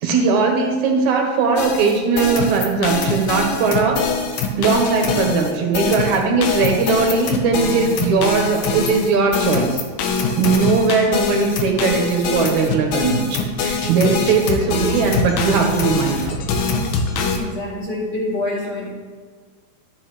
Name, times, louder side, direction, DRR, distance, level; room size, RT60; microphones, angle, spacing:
voice 1, 0.0-4.0 4.6-9.8 10.3-16.4, right 4 dB, 60° right, 1 dB, 2.3 m, -19 dB
sound 1, 1.6-17.4, left 4 dB, 75° left, 2.6 m, -23 dB
voice 2, 17.4-18.9, left 2 dB, 35° left, -7 dB, 3.2 m, -26 dB
13.0 x 8.6 x 3.2 m, 1.5 s
omnidirectional pair, 4.2 m